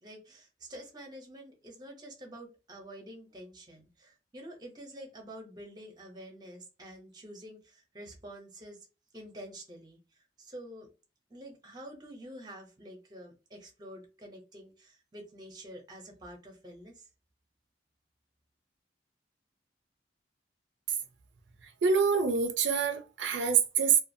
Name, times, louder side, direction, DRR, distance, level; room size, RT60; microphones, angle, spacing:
voice 1, 0.0-8.8 9.1-10.0 10.4-10.9 11.3-17.1, right 1 dB, 25° right, 0.8 m, -48 dB
voice 2, 21.8-24.0, right 6 dB, 80° right, 0.4 m, -26 dB
2.5 x 2.3 x 2.6 m
head